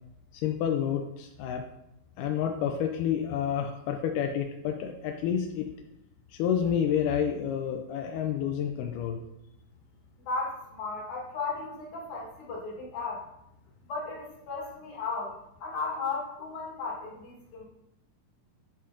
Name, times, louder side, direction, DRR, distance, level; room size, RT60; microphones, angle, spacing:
voice 1, 0.4-1.6 2.2-5.7 6.3-9.2, left 8 dB, 80° left, 3 dB, 1.9 m, -29 dB
voice 2, 10.3-13.2 13.9-15.3 15.6-17.7, left 4 dB, 65° left, -2 dB, 2.6 m, -35 dB
9.1 x 4.3 x 2.5 m, 0.84 s
omnidirectional pair, 4.0 m